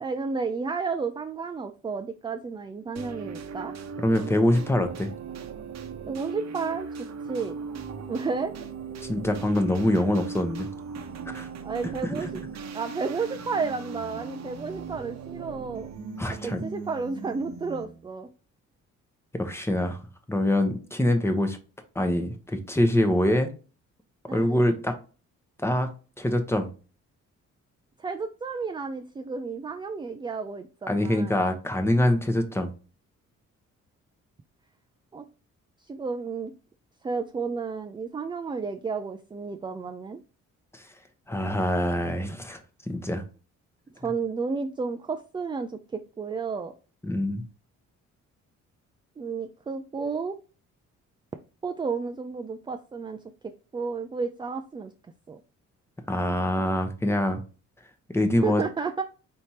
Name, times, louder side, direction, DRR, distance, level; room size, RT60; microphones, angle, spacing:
voice 1, 0.0-3.7 6.1-6.9 7.3-7.6 8.1-8.5 11.6-12.3 12.7-15.9 16.3-18.3 24.3-24.8 28.0-31.5 35.1-35.3 35.8-36.5 37.0-40.2 44.0-46.7 49.2-50.4 51.6-53.2 53.7-54.9 55.3-55.4 58.4-59.0, right 4 dB, 15° right, 0.3 m, -32 dB
sound 1, 3.0-18.1, right 5 dB, 60° right, 0.8 m, -38 dB
voice 2, 4.0-5.1 9.0-10.7 11.3-11.5 12.0-12.3 16.2-16.6 19.3-20.0 20.3-21.6 21.9-23.5 24.3-24.9 25.6-25.9 26.2-26.7 30.9-32.7 40.7-40.8 41.3-42.6 42.9-43.2 47.0-47.4 56.1-57.4 58.1-58.6, left 1 dB, 10° left, 0.8 m, -24 dB
4.3 x 3.3 x 2.8 m
cardioid pair, 90°, 30 cm